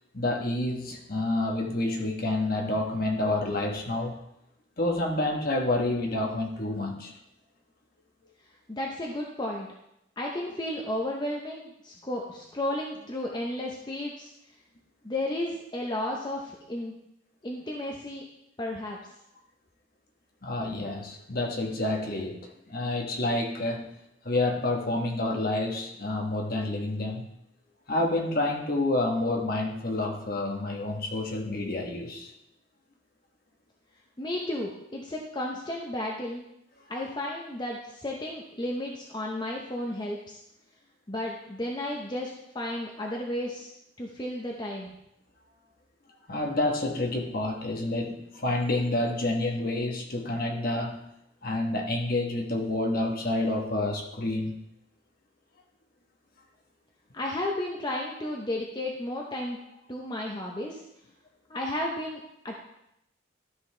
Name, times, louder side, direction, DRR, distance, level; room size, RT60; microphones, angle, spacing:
voice 1, 0.1-4.2 4.8-7.2 20.4-23.9 24.2-27.3 27.9-32.3 46.3-51.1 51.4-54.6, left 2 dB, 45° left, 2 dB, 1.2 m, -29 dB
voice 2, 8.7-9.7 10.2-14.3 15.0-16.9 17.4-18.2 18.6-19.0 34.2-36.4 36.9-40.4 41.1-43.7 44.0-44.9 57.1-59.6 59.9-60.8 61.5-62.6, left 1 dB, 20° left, -1 dB, 0.7 m, -33 dB
12.5 x 5.6 x 3.3 m, 0.81 s
head